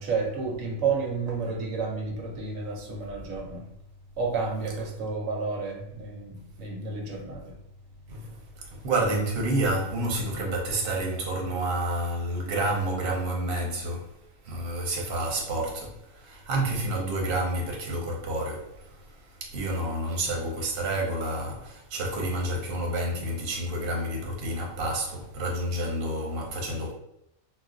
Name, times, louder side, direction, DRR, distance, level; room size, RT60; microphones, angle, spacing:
voice 1, 0.0-3.7 4.2-7.5, right 4 dB, 80° right, 1.0 m, -31 dB
voice 2, 8.1-14.1 14.4-26.9, right 1 dB, 50° right, 0.9 m, -29 dB
2.4 x 2.2 x 3.6 m
omnidirectional pair, 1.4 m